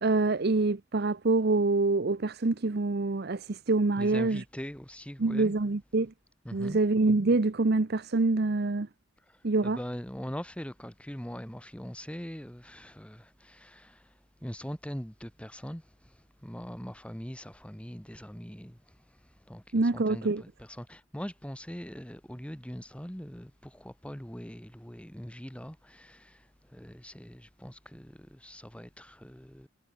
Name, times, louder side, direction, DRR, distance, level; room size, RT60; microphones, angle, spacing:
voice 1, 0.0-4.4 5.2-6.1 6.5-8.9 9.4-9.8 19.7-20.4, right 3 dB, 55° right, 0.8 m, -26 dB
voice 2, 4.0-5.5 6.4-6.8 9.2-29.7, equal, 5° left, 3.0 m, -42 dB
head